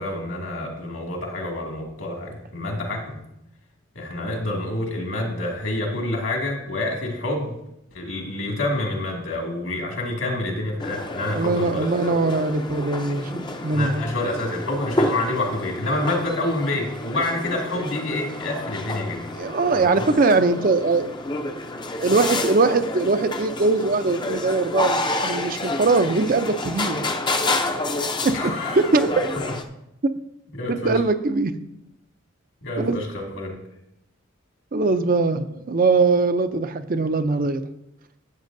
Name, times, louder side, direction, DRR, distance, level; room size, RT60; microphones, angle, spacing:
voice 1, 0.0-3.2 4.0-7.6 7.9-11.9 13.7-19.3 19.7-20.1 28.3-28.9 30.6-31.0 32.6-33.6, left 2 dB, 70° left, 0 dB, 2.2 m, -28 dB
sound 1, 10.8-29.6, left 2 dB, 20° left, 0.5 m, -29 dB
voice 2, 11.2-14.0 19.3-21.1 22.0-27.0 28.2-29.3 30.7-31.5 32.8-33.0 34.7-37.6, right 3 dB, 40° right, 9 dB, 0.5 m, -21 dB
13.0 x 8.1 x 2.6 m, 0.83 s
head